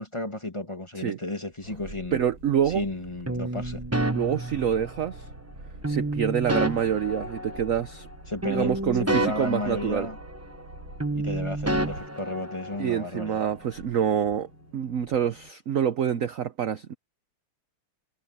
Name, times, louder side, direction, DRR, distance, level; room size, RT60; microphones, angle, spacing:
voice 1, 0.0-2.2 2.7-3.8 8.3-10.2 11.1-13.4, left 2 dB, 15° left, 1.9 m, -33 dB
sound 1, 1.5-12.2 12.6-12.7, right 2 dB, 45° right, 5.7 m, -45 dB
Boat Water vehicle, 1.7-15.5, left 1 dB, 50° left, 6.7 m, -53 dB
voice 2, 2.1-2.8 4.1-5.3 5.9-8.1 8.5-10.1 12.8-16.9, right 8 dB, 60° right, 0.9 m, -26 dB
sound 2, 3.3-5.2 5.8-8.1 8.4-10.7 11.0-13.1, right 1 dB, 15° right, 0.5 m, -30 dB
omnidirectional pair, 2.3 m